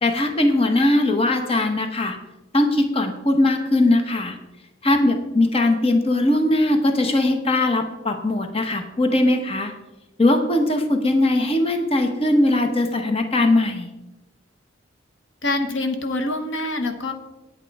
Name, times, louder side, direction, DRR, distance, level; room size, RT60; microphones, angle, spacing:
voice 1, 0.0-2.2 2.5-4.4 4.8-9.7 10.2-13.9, left 1 dB, 30° left, 6 dB, 0.9 m, -20 dB
voice 2, 15.4-17.1, left 2 dB, 85° left, 7 dB, 1.1 m, -25 dB
9.6 x 8.4 x 4.7 m, 1.0 s
head